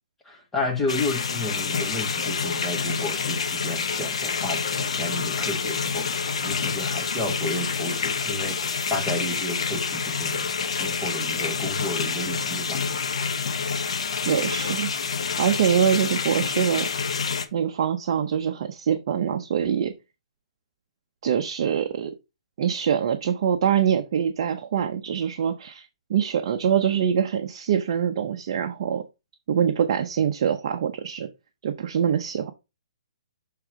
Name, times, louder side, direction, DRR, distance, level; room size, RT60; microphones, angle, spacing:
voice 1, 0.2-12.8, left 2 dB, 10° left, 1.2 m, -32 dB
sound 1, 0.9-17.4, left 5 dB, 65° left, 1.1 m, -28 dB
voice 2, 14.2-14.9 15.4-16.9 17.5-19.9 21.2-22.1 22.6-29.0 29.5-31.3 31.6-32.5, right 8 dB, 45° right, 0.7 m, -24 dB
6.8 x 3.7 x 4.7 m
hypercardioid pair, 160°, 3 cm